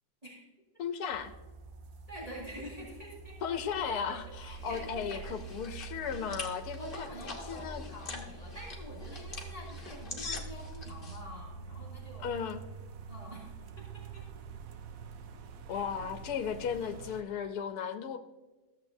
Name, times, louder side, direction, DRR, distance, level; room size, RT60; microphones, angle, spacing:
voice 1, 0.8-1.3 3.4-7.1 7.5-7.8 12.2-12.6 15.7-18.2, left 7 dB, 80° left, 8 dB, 1.2 m, -35 dB
sound 1, 1.1-17.2, right 5 dB, 70° right, 1.0 m, -46 dB
voice 2, 2.1-3.4 3.8-5.6 6.8-12.3 13.1-14.3 15.7-15.8, equal, 25° right, -6 dB, 2.0 m, -47 dB
sound 2, 4.1-11.2, left 3 dB, 35° left, 1.3 m, -44 dB
14.0 x 7.5 x 2.6 m, 1.2 s
omnidirectional pair, 1.6 m